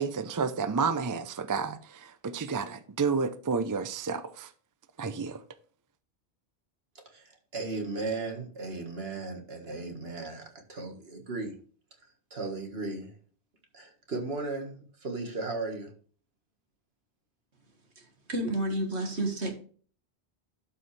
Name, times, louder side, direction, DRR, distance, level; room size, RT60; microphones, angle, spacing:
voice 1, 0.0-4.5 5.0-5.4, right 5 dB, 25° right, 0.4 m, -30 dB
voice 2, 7.1-11.6 12.3-13.2 13.7-15.9, right 3 dB, 65° right, 1.9 m, -36 dB
voice 3, 18.0-19.5, right 1 dB, 80° right, 2.0 m, -31 dB
12.0 x 5.7 x 3.3 m
omnidirectional pair, 1.1 m